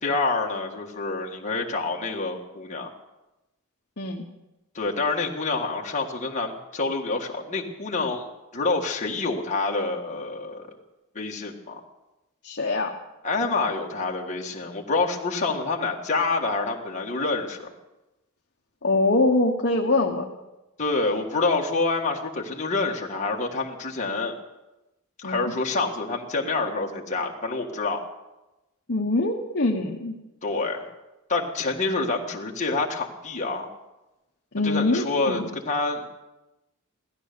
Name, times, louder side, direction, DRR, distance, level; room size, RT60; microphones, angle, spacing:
voice 1, 0.0-2.9 4.7-8.3 8.5-10.7 11.1-11.8 13.2-17.7 20.8-24.3 25.2-28.0 30.4-30.9 31.3-33.7 34.6-36.0, left 3 dB, 35° left, 0 dB, 1.7 m, -27 dB
voice 2, 12.4-12.9 18.8-20.2 25.2-25.5 28.9-30.1 34.5-35.5, left 2 dB, 50° left, 0 dB, 1.2 m, -23 dB
16.5 x 13.0 x 6.8 m, 1.0 s
head